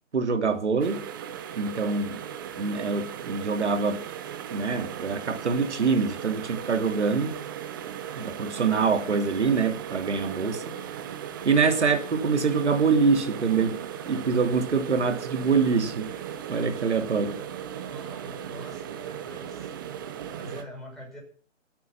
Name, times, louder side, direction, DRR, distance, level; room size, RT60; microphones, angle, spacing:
voice 1, 0.1-1.0 1.6-2.2 2.6-4.0 4.5-7.4 8.1-10.8 11.4-13.8 14.1-16.1 16.5-17.4, right 5 dB, 60° right, 2.9 m, -25 dB
sound 1, 0.8-20.6, right 9 dB, 15° right, 0.8 m, -37 dB
voice 2, 17.9-19.7 20.3-21.2, equal, ahead, 5.9 m, -44 dB
25.5 x 9.3 x 5.9 m
figure-of-eight pair, 145°, 39 cm